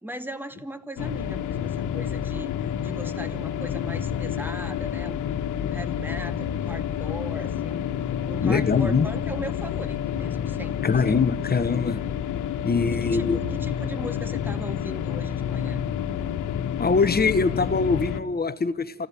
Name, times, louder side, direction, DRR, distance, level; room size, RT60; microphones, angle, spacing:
voice 1, 0.0-7.9 8.3-10.8 11.0-11.2 12.9-15.8, right 1 dB, 5° right, 9 dB, 2.3 m, -38 dB
sound 1, 1.0-18.2, left 9 dB, 85° left, 1.5 m, -29 dB
voice 2, 8.4-9.1 10.8-12.0 12.6-13.4 16.8-19.1, left 5 dB, 30° left, 13 dB, 1.3 m, -23 dB
29.0 x 16.0 x 9.1 m, 1.2 s
cardioid pair, 90°, 30 cm